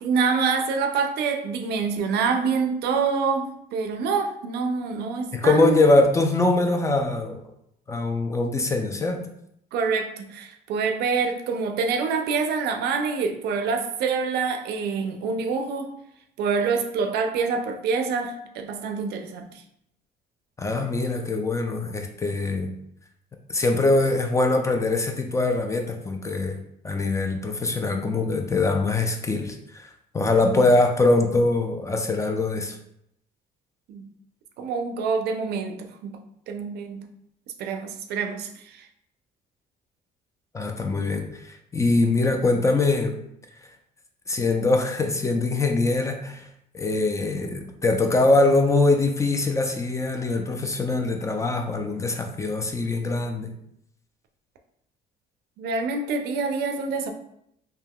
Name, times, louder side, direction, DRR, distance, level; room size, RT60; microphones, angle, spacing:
voice 1, 0.0-5.8 9.7-15.9 16.4-19.5 33.9-34.1 34.6-36.2 36.5-37.0 37.6-38.9 55.6-57.1, right 5 dB, 75° right, 0.4 m, -26 dB
voice 2, 5.3-7.4 7.9-9.2 20.6-22.7 23.5-29.9 30.1-32.8 40.5-43.1 44.3-46.5 46.7-53.5, left 2 dB, 20° left, 0.4 m, -23 dB
3.5 x 2.7 x 2.2 m
cardioid pair, 110°, 17 cm